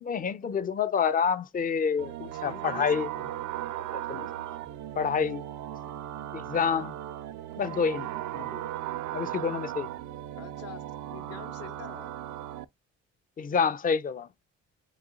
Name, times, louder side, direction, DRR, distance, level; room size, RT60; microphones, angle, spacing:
voice 1, 0.0-2.2 2.4-3.1 3.9-4.3 5.0-5.5 6.3-7.0 7.6-8.6 9.1-9.9 13.4-14.3, left 6 dB, 30° left, 0.4 m, -28 dB
sound 1, 2.0-12.6, right 13 dB, 75° right, 0.4 m, -37 dB
voice 2, 2.2-3.4 10.4-12.1, left 10 dB, 55° left, 0.7 m, -46 dB
4.0 x 3.0 x 3.7 m
cardioid pair, 90°, 30 cm